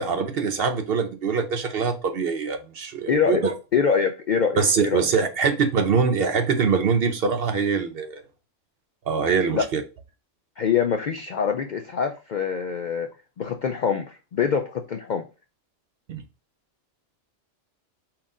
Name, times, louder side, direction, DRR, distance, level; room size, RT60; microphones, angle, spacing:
voice 1, 0.0-3.5 4.6-8.2 9.1-9.8 16.1-16.2, right 5 dB, 60° right, 0.7 m, -23 dB
voice 2, 3.1-3.4 3.7-5.0 9.5-9.6 10.6-13.1 13.4-15.3, left 6 dB, 65° left, 0.4 m, -24 dB
5.9 x 2.4 x 3.7 m
omnidirectional pair, 1.3 m